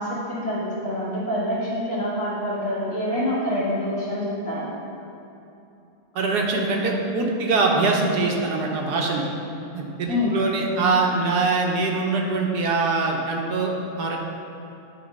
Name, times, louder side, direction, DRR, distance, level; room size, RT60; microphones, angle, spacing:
voice 1, 0.0-4.7 10.0-10.4, left 1 dB, 55° left, -7 dB, 2.4 m, -26 dB
voice 2, 6.1-9.2 9.7-14.2, right 3 dB, 85° right, 0 dB, 1.6 m, -23 dB
10.0 x 4.2 x 5.3 m, 2.8 s
omnidirectional pair, 1.7 m